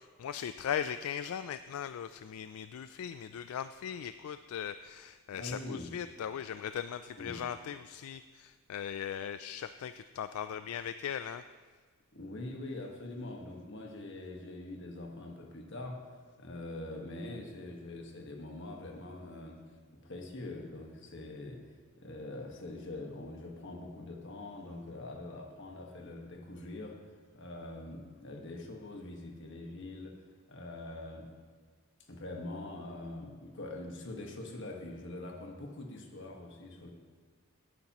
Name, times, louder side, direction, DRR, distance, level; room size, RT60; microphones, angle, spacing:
voice 1, 0.0-11.4, left 8 dB, 75° left, 11 dB, 0.3 m, -39 dB
voice 2, 5.3-5.9 7.2-7.5 12.1-16.1 16.4-21.7 22.0-30.2 30.5-31.3 32.1-36.9, left 2 dB, 55° left, 1 dB, 1.6 m, -44 dB
18.0 x 9.4 x 3.0 m, 1.5 s
head